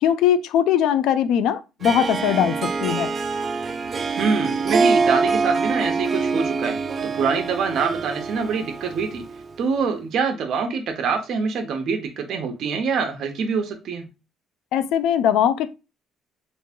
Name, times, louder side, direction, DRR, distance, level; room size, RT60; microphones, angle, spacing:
voice 1, 0.0-3.1 14.7-15.7, left 9 dB, 85° left, 0.4 m, -20 dB
Harp, 1.8-9.5, right 4 dB, 35° right, 0.5 m, -24 dB
voice 2, 4.2-6.8 7.0-9.2 9.6-14.1, right 5 dB, 60° right, 0.9 m, -25 dB
3.1 x 2.4 x 3.6 m
cardioid pair, 120°, 0 cm